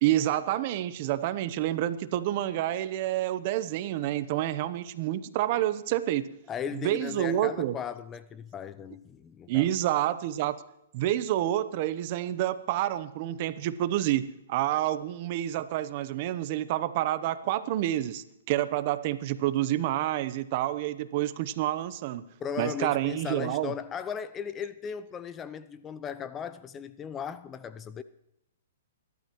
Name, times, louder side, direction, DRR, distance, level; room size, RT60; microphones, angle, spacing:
voice 1, 0.0-6.3 6.8-7.8 9.5-10.6 10.9-22.3 22.6-23.7, right 13 dB, 45° right, 0.8 m, -28 dB
voice 2, 6.5-9.7 22.4-28.0, left 7 dB, 20° left, 0.5 m, -37 dB
24.5 x 12.0 x 3.1 m
hypercardioid pair, 135°, 0 cm